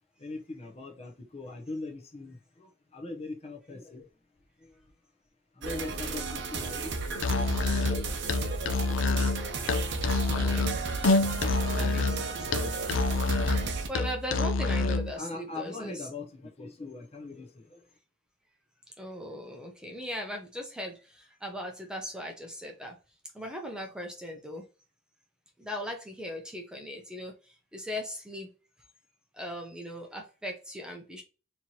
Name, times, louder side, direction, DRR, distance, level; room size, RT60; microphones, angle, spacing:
voice 1, 0.2-4.1 4.6-4.8 5.5-7.5 7.9-8.2 15.1-17.9, left 2 dB, 30° left, 0.8 m, -41 dB
sound 1, 5.6-13.9, right 4 dB, 60° right, 0.7 m, -34 dB
Musical instrument, 7.2-15.1, left 3 dB, 65° left, 0.5 m, -27 dB
voice 2, 10.2-10.7 11.7-13.0 13.6-16.0 19.0-23.0 23.3-24.6 25.6-28.5 29.3-31.2, equal, 5° right, 0.7 m, -39 dB
4.3 x 3.0 x 2.9 m
head